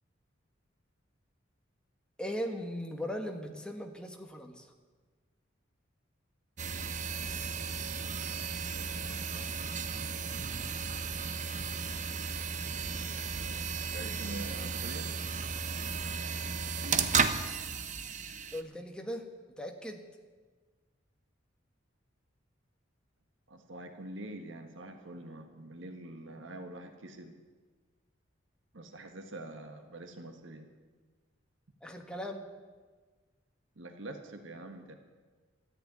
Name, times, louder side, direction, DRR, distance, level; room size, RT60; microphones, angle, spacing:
voice 1, 2.2-4.7 18.5-19.2 19.6-20.0 31.8-32.5, equal, 5° left, 3 dB, 1.4 m, -38 dB
sound 1, 6.6-18.6, right 5 dB, 40° right, 0.8 m, -34 dB
voice 2, 8.7-9.5 13.0-15.1 23.5-27.3 28.7-30.7 33.8-34.9, right 1 dB, 80° right, 6 dB, 1.4 m, -45 dB
14.0 x 10.0 x 9.5 m, 1.4 s
head